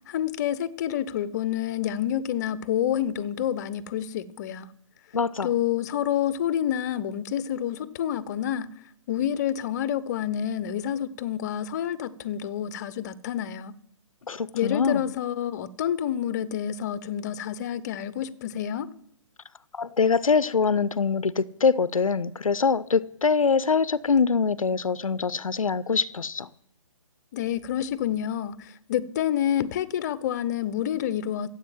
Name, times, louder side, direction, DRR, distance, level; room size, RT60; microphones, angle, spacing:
voice 1, 0.1-4.7 5.4-8.7 9.1-13.8 14.5-18.9 27.3-31.5, left 10 dB, 35° left, 0.8 m, -28 dB
voice 2, 5.1-5.5 14.3-15.1 19.7-26.5, left 5 dB, 85° left, 0.6 m, -24 dB
14.0 x 8.2 x 7.8 m
figure-of-eight pair, 145°, 17 cm